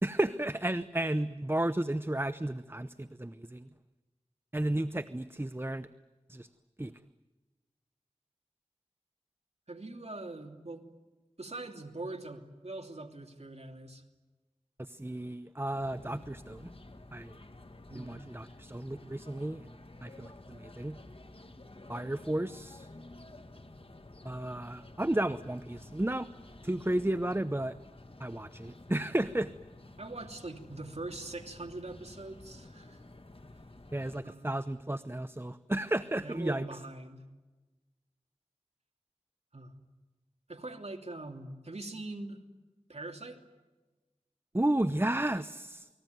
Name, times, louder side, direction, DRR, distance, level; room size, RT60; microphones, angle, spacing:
voice 1, 0.0-3.7 4.5-5.9 6.3-6.5 6.8-6.9 14.8-16.7 17.1-17.3 17.9-19.7 20.0-21.0 21.9-22.9 24.2-26.3 26.6-27.7 28.2-29.5 33.9-36.7 44.5-45.9, right 1 dB, 20° right, 13 dB, 0.8 m, -33 dB
voice 2, 9.7-10.8 11.4-14.0 17.9-18.3 30.0-33.0 34.2-34.6 36.2-37.2 39.5-39.7 40.5-42.4 42.9-43.4, right 2 dB, 65° right, 3 dB, 2.9 m, -42 dB
sound 1, 15.7-34.2, left 2 dB, 50° left, 1.9 m, -52 dB
29.0 x 20.5 x 9.3 m, 1.2 s
wide cardioid pair, 40°, 12 cm